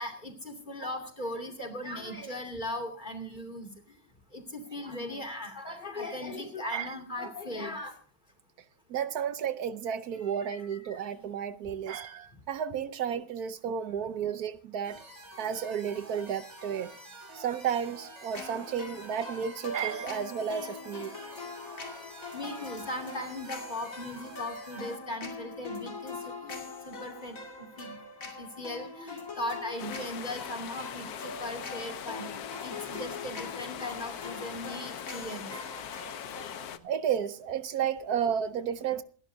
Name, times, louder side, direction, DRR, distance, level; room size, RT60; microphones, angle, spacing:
voice 1, 0.0-3.7 4.3-7.9 10.4-11.0 22.3-26.2 26.4-28.0 28.4-35.5, left 1 dB, 30° left, 2.8 m, -38 dB
voice 2, 8.9-15.0 15.4-16.9 17.3-21.2 36.8-39.0, right 8 dB, 75° right, 1.3 m, -32 dB
sound 1, 14.8-25.0, right 1 dB, 45° right, 3.7 m, -48 dB
sound 2, 18.3-36.7, left 3 dB, 55° left, 2.8 m, -43 dB
sound 3, 29.8-36.8, left 9 dB, 70° left, 1.3 m, -41 dB
27.5 x 11.5 x 2.7 m
omnidirectional pair, 1.7 m